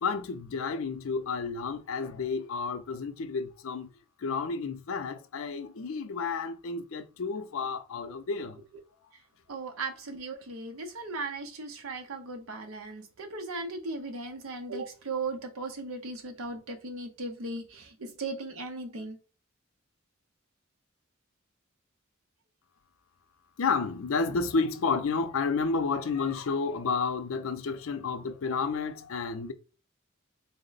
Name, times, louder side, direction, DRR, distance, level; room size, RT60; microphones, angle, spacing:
voice 1, 0.0-3.9 4.2-8.6 23.6-29.5, left 4 dB, 75° left, 0.5 m, -31 dB
voice 2, 9.5-19.2, right 3 dB, 85° right, 0.7 m, -37 dB
3.5 x 2.1 x 3.9 m
head